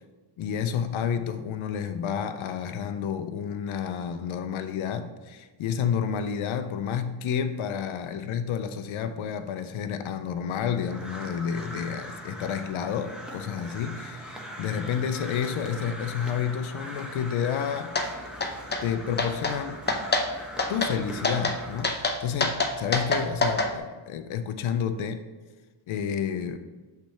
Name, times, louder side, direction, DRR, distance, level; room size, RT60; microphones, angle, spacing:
voice 1, 0.4-18.2 18.8-19.8 20.7-25.2 25.9-26.6, left 7 dB, 75° left, 9 dB, 0.6 m, -30 dB
Crow, 10.8-21.8, equal, ahead, 1.1 m, -41 dB
sound 1, 18.0-18.1 18.4-18.8 19.2-19.6 19.9-20.3 20.6-20.9 21.2-21.6 21.8-23.7, left 2 dB, 20° left, 0.6 m, -25 dB
5.8 x 3.4 x 5.5 m, 1.3 s
cardioid pair, 85°, 49 cm